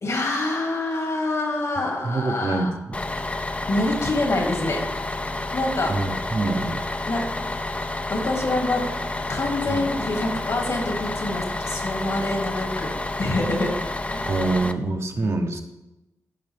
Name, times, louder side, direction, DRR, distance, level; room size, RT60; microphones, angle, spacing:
voice 1, 0.0-2.7 3.7-4.8 5.5-5.9 7.0-7.2 8.1-8.9 9.3-12.9 13.2-13.7 14.0-14.3 15.2-15.6, left 2 dB, 60° left, 1 dB, 2.3 m, -26 dB
voice 2, 1.8-3.0 5.9-6.9 9.7-9.9 14.2-15.6, right 3 dB, 50° right, 4 dB, 1.1 m, -26 dB
Bus, 2.9-14.7, left 2 dB, 20° left, 0.6 m, -29 dB
13.5 x 5.3 x 3.4 m, 0.95 s
cardioid pair, 60°, 6 cm